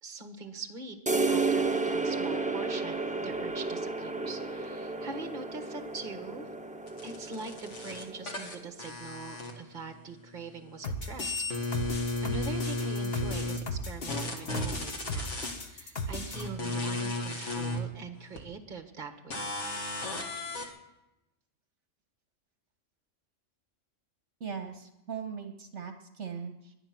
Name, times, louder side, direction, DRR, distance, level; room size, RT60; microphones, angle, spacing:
voice 1, 0.0-6.5 7.0-11.6 12.2-19.5, right 4 dB, 40° right, 6 dB, 1.5 m, -43 dB
sound 1, 1.1-8.6, right 3 dB, 5° right, 1.0 m, -32 dB
sound 2, 6.9-10.0 10.3-13.6 14.1-15.5 16.3-17.8 18.4-18.5 19.3-20.7, left 2 dB, 65° left, 2.3 m, -34 dB
sound 3, 10.8-16.4, left 1 dB, 50° left, 1.5 m, -36 dB
voice 2, 24.4-26.7, right 6 dB, 65° right, 5 dB, 1.5 m, -40 dB
22.0 x 9.4 x 6.0 m, 0.91 s
omnidirectional pair, 1.3 m